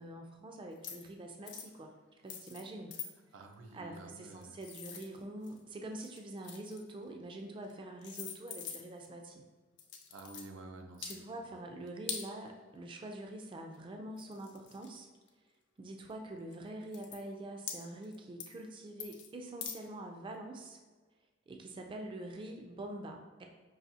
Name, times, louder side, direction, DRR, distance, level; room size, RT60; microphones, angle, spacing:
voice 1, 0.0-1.9 2.2-3.0 3.7-9.4 11.0-15.1 15.8-20.8 21.5-23.5, right 1 dB, 25° right, 3 dB, 0.3 m, -45 dB
sound 1, 0.8-1.1 1.4-1.7 2.3-2.6 2.9-3.1 4.1-5.6 6.0-6.9 7.6-7.7 8.0-9.1 9.8-10.5 10.9-11.2 12.1-12.3 13.7-13.8 14.2-15.3 16.0-16.1 16.5-16.6 16.9-17.2 17.7-18.2 18.4-18.6 19.0-19.3 19.6-19.8, left 7 dB, 65° left, 0.6 m, -44 dB
voice 2, 3.3-4.6 10.1-11.1, right 2 dB, 85° right, 4 dB, 0.5 m, -50 dB
5.4 x 2.7 x 2.6 m, 1.3 s
head